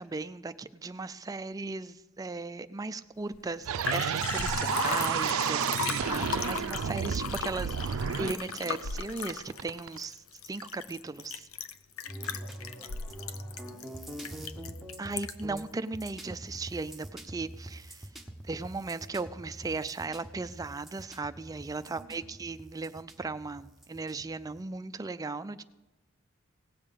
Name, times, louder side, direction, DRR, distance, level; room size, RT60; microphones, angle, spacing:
voice 1, 0.0-11.5 15.0-18.0 18.5-25.6, right 3 dB, 15° right, 13 dB, 0.3 m, -37 dB
Liquid, 3.3-3.4 3.6-15.5 16.0-16.1, left 6 dB, 85° left, 0.6 m, -37 dB
sound 1, 3.7-10.0, right 7 dB, 85° right, 0.4 m, -31 dB
voice 2, 12.0-14.6 21.7-22.3, equal, 55° left, -3 dB, 5.2 m, -56 dB
sound 2, 12.1-24.6, right 1 dB, ahead, 0.9 m, -45 dB
17.5 x 7.3 x 5.2 m, 1.1 s
head